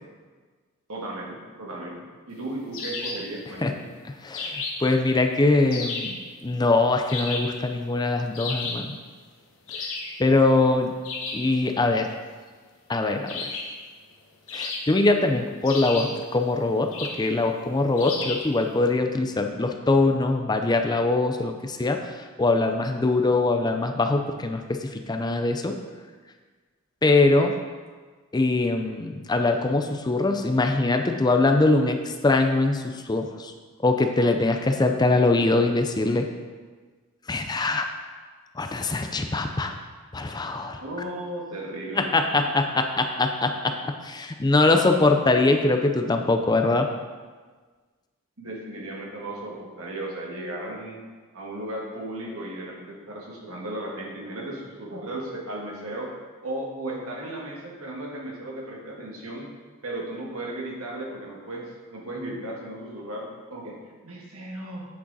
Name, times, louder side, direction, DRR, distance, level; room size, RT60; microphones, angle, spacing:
voice 1, 0.9-3.9 40.8-42.6 44.6-45.0 48.4-51.0 51.3-56.1 56.4-59.5 59.8-63.8 64.0-64.9, right 1 dB, 85° right, -2 dB, 1.8 m, -35 dB
sound 1, 2.7-3.3 4.3-4.9 5.7-6.2 7.1-7.6 8.3-8.9 9.7-10.2 11.0-11.5 13.3-13.8 14.5-15.1 15.6-16.2 16.9-17.3 18.0-18.5, left 4 dB, 70° left, 1.2 m, -33 dB
voice 2, 4.2-6.2 6.4-8.9 9.7-9.9 10.2-10.9 11.3-12.1 12.9-13.5 14.5-25.8 27.0-27.6 28.3-33.5 33.8-36.3 37.3-37.9 38.6-39.7 40.1-40.8 42.0-46.9, left 2 dB, 20° left, 5 dB, 0.4 m, -22 dB
8.5 x 6.2 x 4.0 m, 1.4 s
head